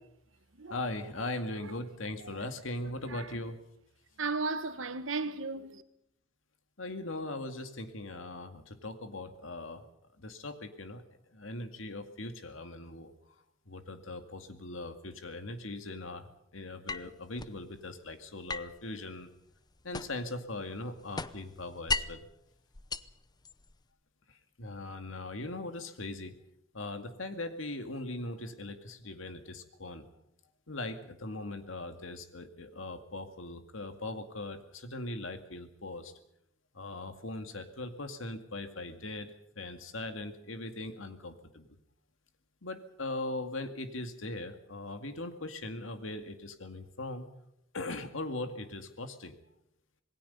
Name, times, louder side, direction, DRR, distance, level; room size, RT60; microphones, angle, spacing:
voice 1, 0.7-3.6 6.8-9.9 10.2-11.0 11.3-13.1 13.7-19.3 19.8-22.3 24.3-26.4 26.7-30.1 30.7-36.1 36.7-41.8 42.6-47.3 47.7-49.4, left 2 dB, 85° left, 2.2 m, -40 dB
voice 2, 4.2-5.8, right 3 dB, 85° right, 1.5 m, -35 dB
sound 1, 16.9-17.6 18.5-20.4 20.7-22.3 22.7-23.8, left 3 dB, 20° left, 0.7 m, -37 dB
26.5 x 20.0 x 5.5 m
head